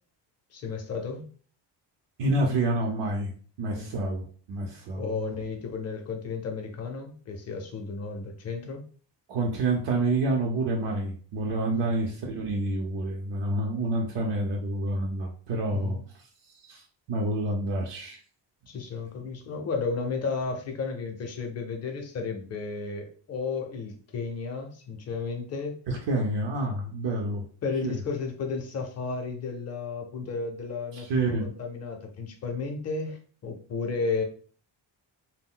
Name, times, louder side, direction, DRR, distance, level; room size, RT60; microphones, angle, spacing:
voice 1, 0.5-1.3 3.8-3.9 4.9-8.8 11.7-11.9 15.7-16.0 18.7-25.8 27.6-34.2, left 4 dB, 40° left, 3 dB, 0.5 m, -33 dB
voice 2, 2.2-3.3 3.6-5.3 9.3-16.0 16.6-18.2 25.9-27.4 27.8-28.0 30.9-31.5, right 2 dB, 75° right, -1 dB, 0.6 m, -28 dB
2.3 x 2.1 x 3.6 m, 0.43 s
wide cardioid pair, 170°, 43 cm